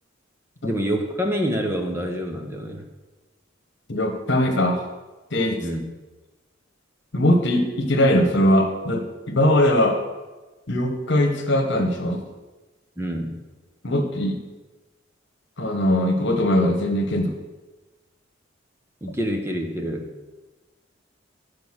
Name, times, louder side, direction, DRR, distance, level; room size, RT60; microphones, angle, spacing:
voice 1, 0.6-2.8 5.6-5.8 13.0-13.4 19.0-20.1, equal, 15° right, 3 dB, 0.9 m, -27 dB
voice 2, 3.9-4.8 5.3-5.6 7.1-10.0 10.7-12.2 13.8-14.4 15.6-17.4, left 1 dB, 65° left, 4 dB, 1.3 m, -20 dB
9.2 x 5.1 x 6.2 m, 1.2 s
head